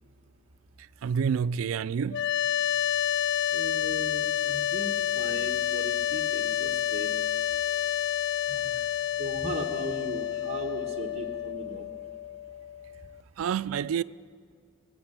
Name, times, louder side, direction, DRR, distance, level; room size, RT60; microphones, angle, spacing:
voice 1, 1.0-2.3 13.4-14.0, right 7 dB, 90° right, 0.3 m, -28 dB
sound 1, 2.1-13.2, left 11 dB, 55° left, 0.3 m, -29 dB
voice 2, 3.5-7.1 8.5-8.7 9.2-11.8, right 1 dB, 30° right, 1.3 m, -38 dB
20.0 x 7.8 x 8.8 m
head